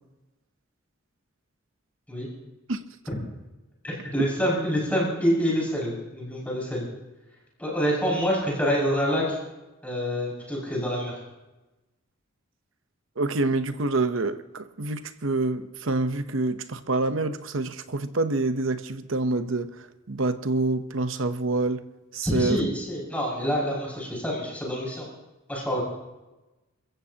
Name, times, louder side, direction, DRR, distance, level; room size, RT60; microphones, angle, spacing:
voice 1, 3.8-6.9 7.6-9.4 9.8-11.2 22.2-25.1 25.5-25.8, equal, 5° left, 6.1 m, -26 dB
voice 2, 13.2-21.8 22.1-22.6, right 2 dB, 70° right, 0.9 m, -27 dB
30.0 x 15.0 x 2.9 m
head